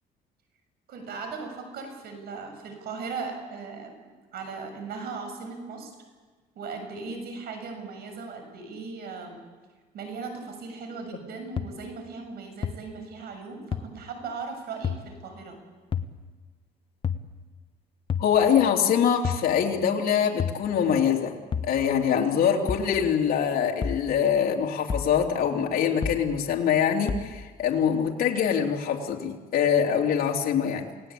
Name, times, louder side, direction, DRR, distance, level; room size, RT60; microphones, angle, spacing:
voice 1, 0.9-3.9 4.3-5.9 6.6-9.4 9.9-15.6, right 4 dB, 70° right, 5 dB, 7.0 m, -38 dB
sound 1, 11.6-11.7 12.6-12.7 13.7-13.8 14.8-15.0 15.9-16.1 17.0-17.2 18.1-18.3 19.2-19.5 20.4-20.6 21.5-21.7 22.7-22.9 23.8-24.0 24.9-25.1 26.0-26.2 27.1-27.3, left 6 dB, 30° left, 1.3 m, -29 dB
voice 2, 18.2-21.3 21.6-30.9, left 8 dB, 60° left, 0 dB, 3.2 m, -24 dB
28.5 x 18.5 x 8.6 m, 1.4 s
cardioid pair, 110°, 17 cm